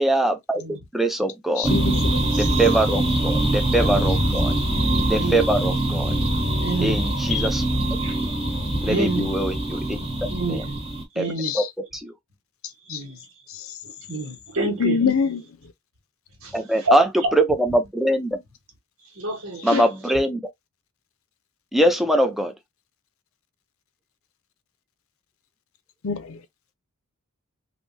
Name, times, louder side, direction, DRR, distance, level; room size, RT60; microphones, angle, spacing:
voice 1, 0.0-1.7 2.3-4.5 5.1-6.2 6.8-7.6 8.8-10.0 10.5-10.6 11.2-11.6 11.9-12.1 16.5-18.4 19.6-20.4 21.7-22.5, right 1 dB, ahead, 0.5 m, -22 dB
voice 2, 1.6-2.2 7.3-7.5 11.4-11.7 12.9-13.0 14.8-15.4 19.7-19.8 26.0-26.4, left 5 dB, 80° left, 0.6 m, -24 dB
sound 1, 1.6-11.0, right 1 dB, 25° right, 1.1 m, -23 dB
voice 3, 5.1-5.5 6.6-7.0 8.0-8.2 8.8-9.3 10.2-10.7 11.1-11.5 12.9-13.2 13.8-15.0 16.4-16.6 16.8-17.0 19.1-19.8, right 2 dB, 90° right, 1.5 m, -28 dB
3.4 x 2.7 x 2.6 m
head